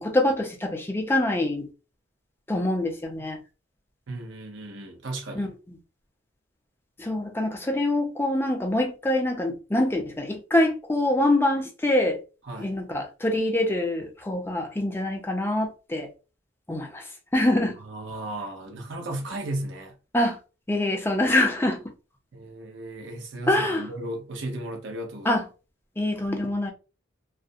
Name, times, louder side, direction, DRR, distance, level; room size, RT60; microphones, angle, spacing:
voice 1, 0.0-1.7 2.5-3.4 5.3-5.5 7.0-12.2 12.6-16.1 16.7-17.8 20.1-20.4 20.7-21.8 23.5-23.9 25.2-25.4 26.0-26.7, left 1 dB, 10° left, 0.4 m, -25 dB
voice 2, 4.1-5.5 12.4-12.7 17.8-19.9 22.3-25.4, right 1 dB, 60° right, 0.7 m, -35 dB
2.4 x 2.0 x 2.6 m
head